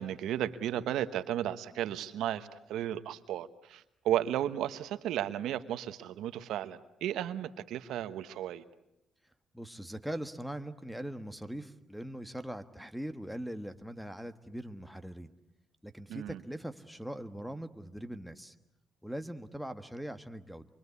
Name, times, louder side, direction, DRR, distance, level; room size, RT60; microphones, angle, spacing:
voice 1, 0.0-8.6 16.1-16.4, right 11 dB, 85° right, 11 dB, 1.2 m, -34 dB
voice 2, 9.5-15.3 15.8-18.5 19.0-20.7, equal, ahead, 7 dB, 1.4 m, -41 dB
26.5 x 23.5 x 8.3 m, 0.84 s
cardioid pair, 90°, 0 cm